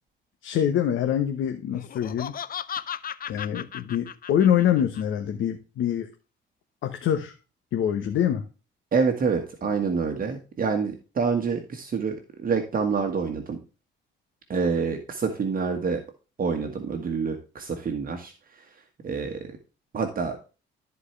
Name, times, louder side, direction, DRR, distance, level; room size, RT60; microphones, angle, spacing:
voice 1, 0.4-2.3 3.3-6.1 6.8-7.3 7.7-8.5, left 9 dB, 80° left, 5 dB, 1.1 m, -25 dB
Laughter, 1.8-5.0, left 9 dB, 45° left, 0.6 m, -35 dB
voice 2, 8.9-13.6 14.5-16.0 16.4-18.6 19.0-19.5 19.9-20.4, right 5 dB, 45° right, 4 dB, 1.6 m, -27 dB
13.5 x 4.7 x 3.3 m, 0.32 s
cardioid pair, 90°, 20 cm